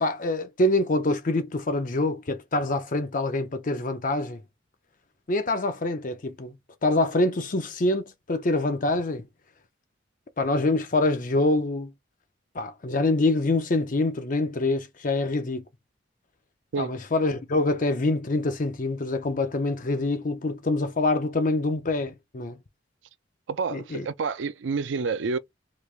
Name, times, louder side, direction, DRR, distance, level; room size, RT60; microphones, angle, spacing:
voice 1, 0.0-4.4 5.3-6.6 6.8-9.3 10.4-11.9 12.5-15.6 16.8-22.6 23.7-24.1, left 2 dB, 45° left, 0.6 m, -25 dB
voice 2, 23.5-25.4, right 5 dB, 75° right, 0.4 m, -29 dB
3.3 x 3.1 x 2.4 m
head